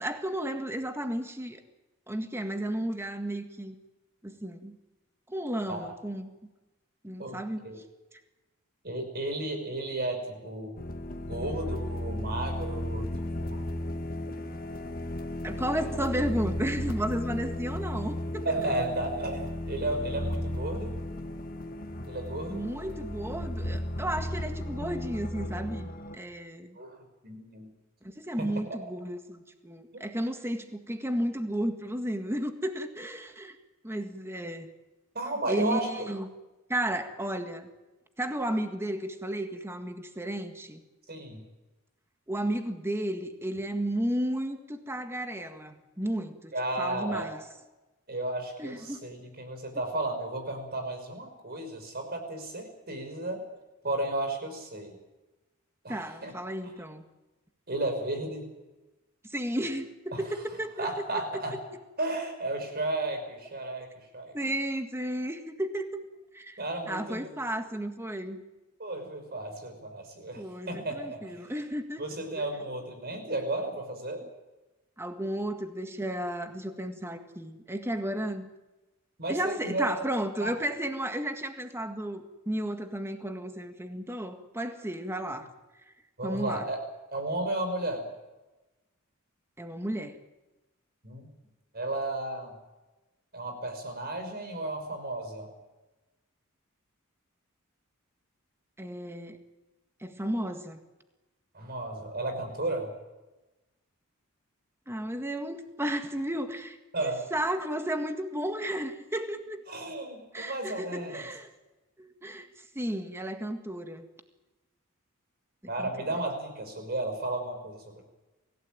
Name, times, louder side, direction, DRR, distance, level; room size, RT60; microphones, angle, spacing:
voice 1, 0.0-1.6 2.1-3.8 4.2-4.8 5.3-6.3 7.0-7.8 15.4-18.5 22.5-26.8 28.0-33.6 33.8-34.7 35.5-36.3 36.7-37.7 38.2-40.8 42.3-47.4 48.6-49.0 55.9-57.1 59.2-60.9 61.3-61.6 64.3-66.0 66.3-66.6 66.9-68.4 70.4-72.0 72.4-72.7 75.0-78.5 79.3-85.5 86.2-86.7 89.6-90.2 98.8-99.4 100.0-100.8 104.9-109.7 110.3-111.5 112.0-112.5 112.8-114.1 115.8-116.1, right 1 dB, 10° right, 6 dB, 1.8 m, -33 dB
voice 2, 7.2-7.8 8.8-10.8 11.2-13.6 18.4-20.9 22.1-22.7 26.8-27.0 27.2-27.7 28.4-28.5 35.1-36.1 41.1-41.4 46.5-47.3 48.1-53.4 53.8-55.0 55.8-56.3 56.6-56.7 57.7-58.5 60.1-60.2 60.8-61.6 62.0-63.9 64.1-64.3 66.6-67.5 68.8-71.4 72.0-74.2 79.2-79.9 80.4-80.6 86.2-86.8 87.1-88.0 91.0-91.3 91.7-92.5 93.3-95.5 101.5-102.9 106.9-107.2 109.7-111.3 115.7-118.0, right 2 dB, 45° right, 6 dB, 5.7 m, -33 dB
sound 1, 10.8-26.2, left 1 dB, 40° left, 1.5 m, -35 dB
25.0 x 16.5 x 9.0 m, 1.1 s
head